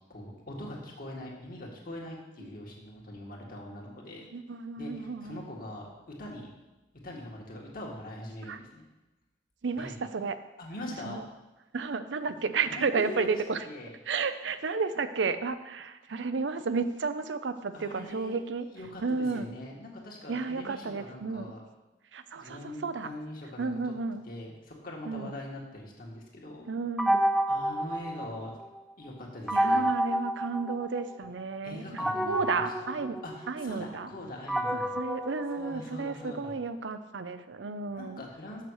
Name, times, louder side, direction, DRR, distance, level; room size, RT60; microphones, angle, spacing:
voice 1, 0.1-4.3 4.8-6.5 7.0-8.9 9.8-9.9 10.6-11.2 12.7-13.4 13.7-13.9 17.7-18.4 18.7-21.6 22.3-23.7 24.3-26.6 27.5-28.6 29.0-29.9 31.6-35.0 35.6-36.5 37.9-38.6, left 1 dB, 55° left, -1 dB, 1.9 m, -42 dB
voice 2, 4.3-5.4 8.4-8.6 9.6-10.4 11.0-11.3 11.7-13.7 14.1-18.7 19.0-19.5 20.3-21.5 22.1-23.1 23.6-24.2 25.0-25.4 26.7-27.2 29.5-31.8 32.3-33.2 33.5-34.1 34.7-38.2, right 4 dB, 85° right, 11 dB, 0.6 m, -32 dB
sound 1, 27.0-28.8 29.5-31.3 32.0-36.3, right 1 dB, ahead, 0.4 m, -30 dB
6.7 x 6.3 x 6.4 m, 1.1 s
head